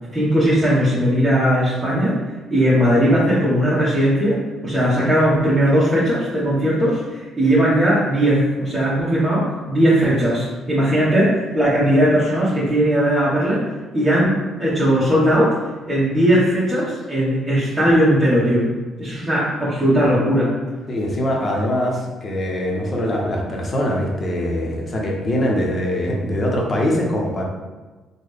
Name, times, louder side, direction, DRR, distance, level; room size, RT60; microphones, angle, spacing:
voice 1, 0.1-2.2 2.5-13.6 13.9-15.6 15.9-18.7 19.0-20.5, equal, 10° right, -11 dB, 1.1 m, -18 dB
voice 2, 20.9-27.4, left 1 dB, 40° left, -1 dB, 0.8 m, -22 dB
3.6 x 2.2 x 3.3 m, 1.2 s
supercardioid pair, 65°, 0 cm